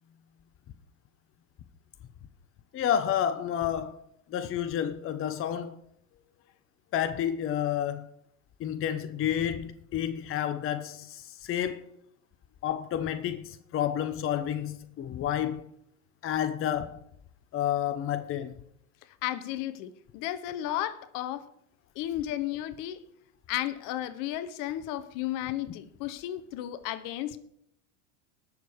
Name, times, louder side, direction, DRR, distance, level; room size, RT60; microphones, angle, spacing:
voice 1, 2.7-3.9 4.3-5.8 6.9-8.1 8.6-11.8 12.6-15.6 16.2-17.0 17.5-18.5, left 10 dB, 35° left, 0.9 m, -30 dB
voice 2, 19.2-21.5 22.0-23.0 23.5-27.4, left 13 dB, 55° left, 1.2 m, -33 dB
19.0 x 6.7 x 4.7 m
hypercardioid pair, 95°, 39 cm